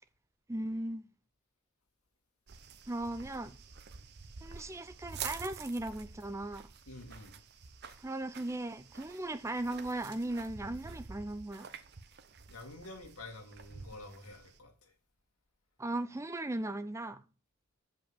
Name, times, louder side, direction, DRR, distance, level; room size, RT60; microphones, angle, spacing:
voice 1, 0.5-1.1 2.9-3.6 4.4-6.7 8.0-11.7 15.8-17.2, right 1 dB, 15° right, 0.4 m, -37 dB
sound 1, 2.5-14.6, right 6 dB, 50° right, 0.8 m, -49 dB
voice 2, 6.9-7.4 12.5-14.9, left 2 dB, 90° left, 2.3 m, -49 dB
7.0 x 5.4 x 7.3 m
head